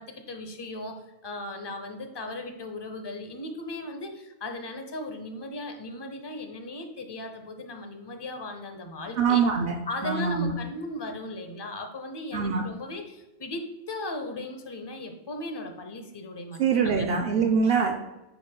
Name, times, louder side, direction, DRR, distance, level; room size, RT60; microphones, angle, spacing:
voice 1, 0.0-9.4 9.9-17.1, left 2 dB, 30° left, 6 dB, 0.6 m, -37 dB
voice 2, 9.2-10.5 12.3-12.6 16.6-17.9, right 6 dB, 70° right, 3 dB, 0.8 m, -24 dB
9.5 x 4.6 x 2.2 m, 1.0 s
omnidirectional pair, 1.1 m